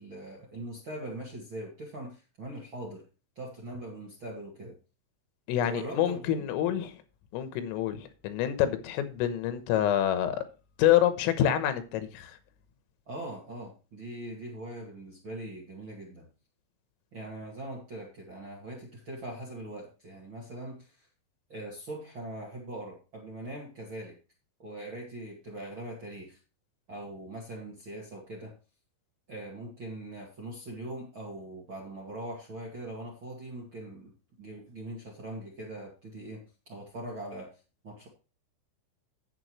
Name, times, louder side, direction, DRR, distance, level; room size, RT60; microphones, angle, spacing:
voice 1, 0.0-3.0 3.3-4.7 5.6-6.5 13.0-16.3 17.1-21.1 21.5-24.1 24.6-26.4 26.9-28.5 29.3-34.1 34.4-36.4 36.7-37.5 37.8-38.1, right 1 dB, 45° right, 1.7 m, -41 dB
voice 2, 5.5-7.0 7.3-10.4 10.8-12.4, left 11 dB, 90° left, 3.7 m, -27 dB
10.5 x 8.7 x 3.2 m
omnidirectional pair, 5.8 m